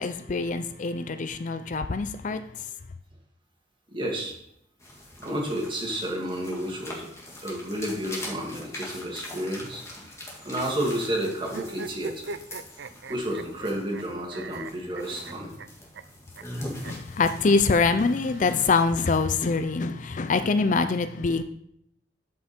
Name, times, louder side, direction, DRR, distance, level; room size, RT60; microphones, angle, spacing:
voice 1, 0.0-2.7 16.8-21.4, left 4 dB, 45° left, 0.5 m, -24 dB
voice 2, 3.9-4.3 5.2-7.1 7.4-9.8 10.4-12.3 13.1-15.5, right 1 dB, 30° right, 2.4 m, -31 dB
sound 1, 4.8-19.3, left 1 dB, 15° left, 2.1 m, -42 dB
sound 2, 11.5-14.0 14.3-15.7 15.9-16.0 16.4-16.5 16.8-16.9 18.0-19.0, right 4 dB, 85° right, 0.5 m, -40 dB
12.5 x 5.7 x 4.5 m
head